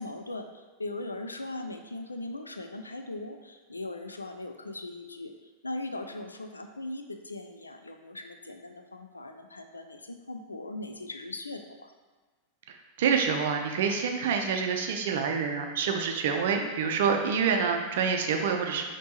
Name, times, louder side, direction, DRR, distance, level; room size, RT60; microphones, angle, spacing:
voice 1, 0.0-5.3 5.6-11.9, left 2 dB, 80° left, 6 dB, 0.3 m, -39 dB
voice 2, 12.7-18.8, right 6 dB, 55° right, 4 dB, 0.5 m, -27 dB
5.2 x 2.9 x 2.9 m, 1.4 s
figure-of-eight pair, 90°, 0 cm